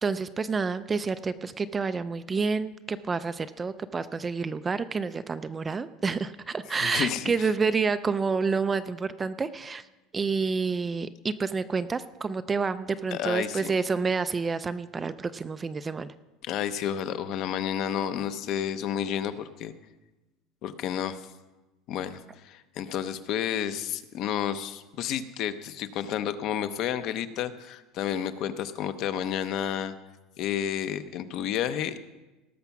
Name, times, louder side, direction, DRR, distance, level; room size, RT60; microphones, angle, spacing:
voice 1, 0.0-9.8 10.1-16.1, right 4 dB, 15° right, 12 dB, 0.3 m, -29 dB
voice 2, 6.8-7.5 13.1-13.7 16.5-19.7 20.6-21.2 21.9-29.9 30.4-32.0, left 9 dB, 45° left, 12 dB, 0.7 m, -31 dB
18.0 x 7.1 x 5.9 m, 1.1 s
cardioid pair, 165°, 0 cm